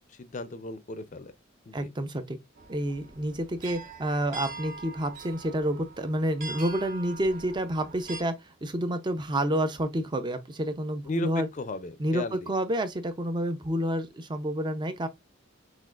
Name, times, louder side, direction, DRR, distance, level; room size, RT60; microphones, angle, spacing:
voice 1, 0.1-1.3 1.7-1.9 11.1-12.5, left 2 dB, 40° left, 0.5 m, -35 dB
voice 2, 1.7-2.4 2.7-8.3 8.6-11.5 12.0-15.1, right 1 dB, 20° right, 0.5 m, -29 dB
sound 1, 2.6-8.2, right 3 dB, 40° right, 0.9 m, -43 dB
6.0 x 2.4 x 2.4 m
head